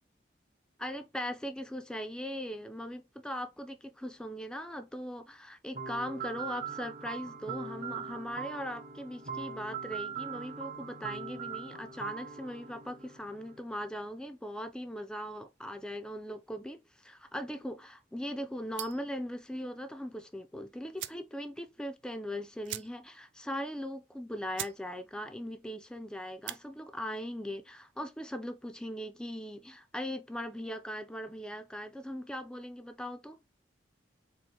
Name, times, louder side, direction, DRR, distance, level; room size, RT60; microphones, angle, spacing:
voice 1, 0.8-33.4, equal, 5° left, 0.4 m, -39 dB
sound 1, 5.7-13.6, right 6 dB, 45° right, 0.8 m, -41 dB
sound 2, 18.7-19.1 20.5-20.6 20.9-21.3 21.7-21.8 22.0-22.1 22.6-23.2 23.6-23.7 24.2-24.3 24.5-24.8 25.2-25.5 26.3-26.6, right 13 dB, 90° right, 0.3 m, -41 dB
4.2 x 2.5 x 2.8 m
head